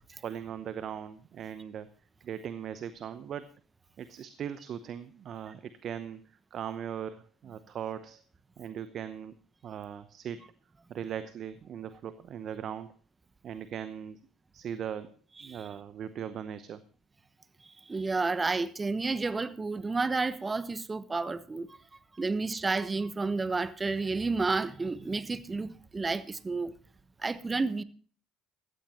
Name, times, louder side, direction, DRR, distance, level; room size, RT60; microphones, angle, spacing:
voice 1, 0.2-1.9 2.2-3.5 4.0-6.2 6.5-8.2 8.6-9.3 9.6-10.4 10.9-12.9 13.4-14.2 14.5-15.2 15.4-16.8, right 9 dB, 50° right, 0.8 m, -39 dB
voice 2, 17.9-21.8 22.2-26.7 27.2-27.8, right 3 dB, 25° right, 1.1 m, -31 dB
15.5 x 14.0 x 2.9 m
hypercardioid pair, 60°, 0 cm